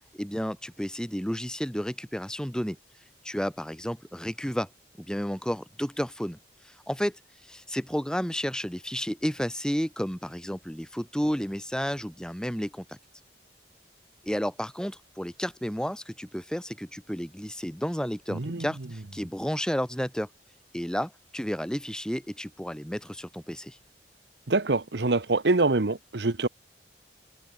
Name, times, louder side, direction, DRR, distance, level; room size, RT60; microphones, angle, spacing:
voice 1, 0.1-2.8 3.2-4.7 5.0-6.4 6.6-13.0 14.2-20.3 20.7-23.8, equal, 5° left, 1.9 m, -32 dB
voice 2, 18.3-18.7 24.5-26.5, right 3 dB, 70° right, 1.0 m, -25 dB
head